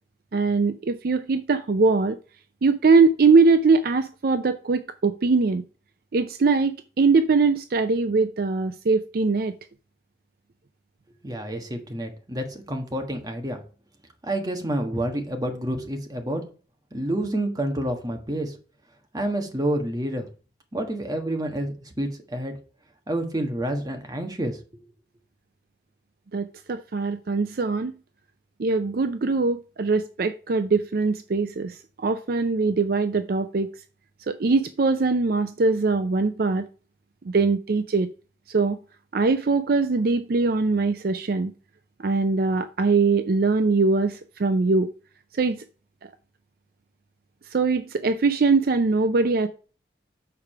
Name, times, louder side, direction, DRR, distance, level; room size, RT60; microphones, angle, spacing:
voice 1, 0.3-2.2 2.6-5.6 6.1-9.5 26.3-28.0 28.6-33.7 34.3-36.7 37.2-38.1 38.5-38.8 39.1-41.5 42.0-44.9 45.3-45.6 47.5-49.5, right 4 dB, 55° right, 0.5 m, -22 dB
voice 2, 11.2-13.6 14.2-16.5 16.9-18.6 19.1-20.3 20.7-22.6 23.1-24.8, right 1 dB, 20° right, 1.3 m, -28 dB
6.8 x 4.8 x 5.6 m
head